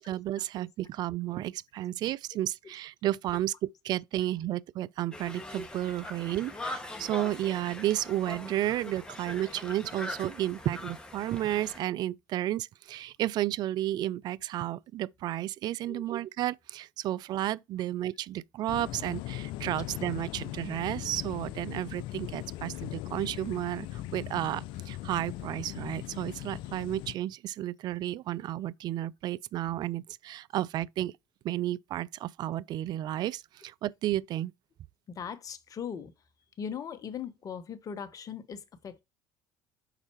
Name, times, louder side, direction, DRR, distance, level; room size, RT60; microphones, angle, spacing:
voice 1, 0.0-31.1 31.4-34.5, right 13 dB, 50° right, 0.3 m, -32 dB
Conversation, 5.1-11.8, left 1 dB, 10° left, 1.7 m, -42 dB
sound 1, 18.7-27.2, left 15 dB, 65° left, 0.4 m, -39 dB
voice 2, 35.1-36.1 36.6-39.0, left 7 dB, 40° left, 1.1 m, -39 dB
5.9 x 4.3 x 4.5 m
hypercardioid pair, 65°, 9 cm